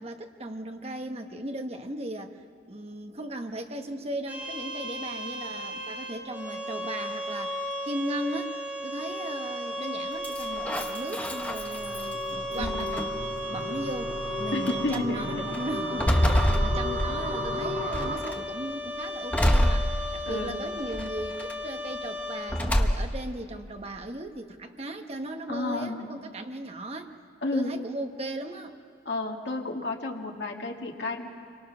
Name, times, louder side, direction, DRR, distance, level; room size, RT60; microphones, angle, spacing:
voice 1, 0.0-2.4 2.7-8.6 8.8-13.1 13.5-27.1 27.5-28.8, right 1 dB, 35° right, 5 dB, 1.3 m, -37 dB
sound 1, 4.3-22.4, left 1 dB, 10° right, 6.0 m, -35 dB
sound 2, 10.2-12.1 12.6-13.3 14.1-14.2 14.7-15.0 15.5-17.5 17.9-18.4 19.3-20.5 20.9-21.5 22.5-23.3, equal, 10° left, 1.0 m, -26 dB
sound 3, 11.2-18.2, equal, 60° right, 3.0 m, -35 dB
voice 2, 12.6-12.9 14.5-15.2 20.3-20.6 25.5-26.1 27.4-27.7 29.1-31.3, left 2 dB, 75° left, 1 dB, 2.0 m, -31 dB
27.5 x 23.5 x 6.1 m, 2.1 s
head